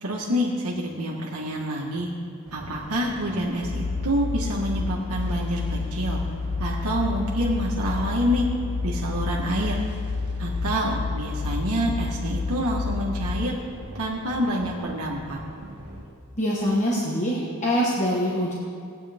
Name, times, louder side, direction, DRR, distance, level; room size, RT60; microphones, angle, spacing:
voice 1, 0.0-2.1 2.5-6.2 6.6-8.5 8.8-9.8 10.4-13.6 13.9-15.4, equal, 75° right, -3 dB, 1.5 m, -27 dB
sound 1, 2.5-16.0, equal, 55° right, 1.9 m, -42 dB
sound 2, 3.6-13.5, left 4 dB, 70° left, 0.7 m, -29 dB
voice 2, 16.4-18.5, equal, 35° left, -5 dB, 1.3 m, -24 dB
18.5 x 9.1 x 3.5 m, 2.4 s
head